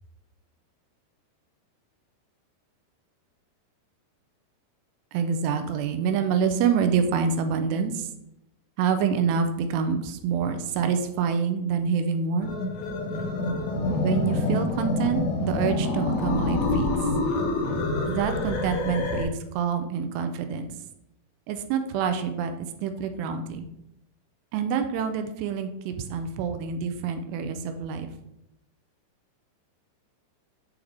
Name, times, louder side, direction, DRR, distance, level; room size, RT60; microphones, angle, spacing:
voice 1, 5.1-8.1 8.8-12.5 14.0-17.1 18.0-20.7 21.5-23.7 24.5-28.1, right 6 dB, 85° right, 7 dB, 2.7 m, -27 dB
sound 1, 12.4-19.3, left 2 dB, 85° left, 3.1 m, -26 dB
8.6 x 3.3 x 3.6 m, 0.82 s
omnidirectional pair, 4.9 m